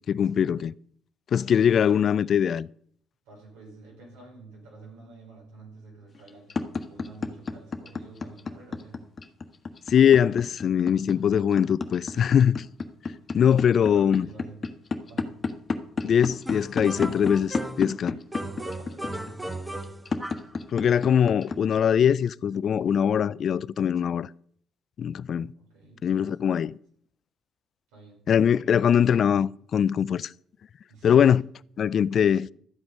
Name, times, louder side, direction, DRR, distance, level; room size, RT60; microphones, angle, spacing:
voice 1, 0.1-0.7 1.3-2.7 9.9-12.7 13.3-14.3 16.0-18.2 20.7-24.3 25.0-25.5 26.0-26.8 28.3-30.3 31.0-31.4 31.8-32.5, left 8 dB, 55° left, 0.4 m, -22 dB
voice 2, 3.3-9.0 12.1-12.3 13.5-14.6 15.1-15.5 18.4-19.4 25.6-26.3 27.9-28.2 30.9-31.3, right 3 dB, 85° right, 5.2 m, -49 dB
sound 1, 6.1-21.8, left 5 dB, 35° left, 1.3 m, -30 dB
sound 2, 16.5-18.0 18.3-20.5, right 1 dB, 10° right, 1.3 m, -36 dB
13.0 x 7.8 x 5.4 m
supercardioid pair, 70°, 0 cm